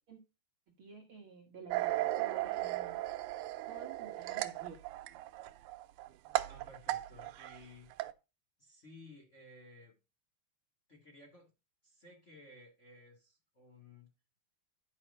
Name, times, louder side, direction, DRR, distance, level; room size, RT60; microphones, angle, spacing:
voice 1, 0.8-3.0 3.7-4.8, right 5 dB, 55° right, 1 dB, 1.7 m, -51 dB
sound 1, 1.7-7.6 7.9-8.1, right 16 dB, 85° right, 2.3 m, -36 dB
voice 2, 6.5-7.9 8.6-9.9 10.9-11.5 11.8-14.1, left 2 dB, 25° left, -1 dB, 1.8 m, -56 dB
10.5 x 4.9 x 5.3 m, 0.28 s
omnidirectional pair, 3.9 m